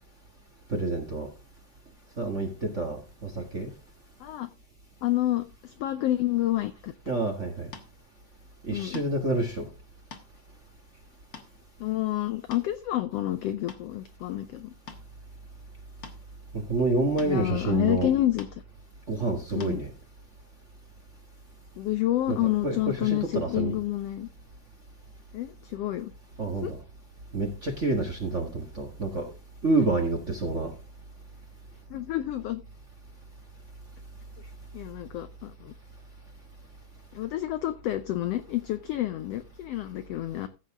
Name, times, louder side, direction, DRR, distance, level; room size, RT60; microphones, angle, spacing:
voice 1, 0.7-1.3 2.2-3.7 7.1-7.7 8.6-9.7 16.5-18.1 19.1-19.9 22.3-23.8 26.4-26.8 27.3-29.3 29.6-30.7, right 2 dB, 35° right, 1.3 m, -28 dB
voice 2, 5.0-6.9 8.7-9.0 11.8-14.7 17.2-18.5 19.5-19.8 21.8-24.3 25.3-26.1 26.6-26.7 31.9-32.6 34.7-35.7 37.1-40.5, left 14 dB, 90° left, 1.3 m, -29 dB
sound 1, 7.7-7.9 8.9-9.3 9.9-10.3 10.8-10.9 11.3-11.5 12.3-12.8 13.4-13.9 14.9-15.1 16.0-16.2 17.2-17.4 18.4-18.6 19.6-19.8, left 5 dB, 50° left, 1.1 m, -44 dB
15.0 x 7.6 x 3.6 m
omnidirectional pair, 3.5 m